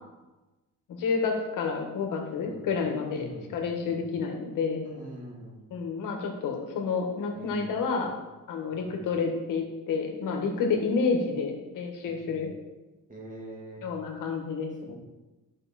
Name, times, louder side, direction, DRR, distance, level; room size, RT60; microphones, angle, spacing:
voice 1, 1.0-4.8 5.7-8.1 8.5-12.5 13.8-14.9, left 5 dB, 70° left, 2 dB, 1.9 m, -29 dB
voice 2, 3.1-3.5 3.8-4.0 4.8-5.7 7.3-7.8 8.7-9.0 12.1-12.3 13.1-13.9 14.9-15.0, right 1 dB, 25° right, -3 dB, 2.3 m, -44 dB
12.5 x 6.2 x 4.4 m, 1.1 s
cardioid pair, 180°, 33 cm